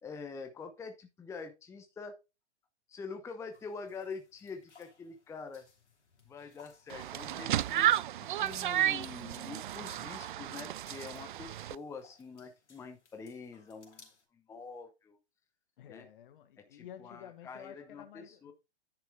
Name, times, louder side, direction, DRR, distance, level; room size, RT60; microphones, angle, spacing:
voice 1, 0.0-2.1 2.9-5.7 6.3-15.2 15.9-16.1 16.6-18.5, left 5 dB, 10° left, 0.8 m, -46 dB
sound 1, 3.5-14.3, left 5 dB, 70° left, 3.0 m, -64 dB
sound 2, 6.9-11.8, right 12 dB, 45° right, 0.4 m, -32 dB
voice 2, 15.8-18.5, left 10 dB, 45° left, 1.4 m, -51 dB
10.0 x 5.9 x 3.5 m
figure-of-eight pair, 115°, 35 cm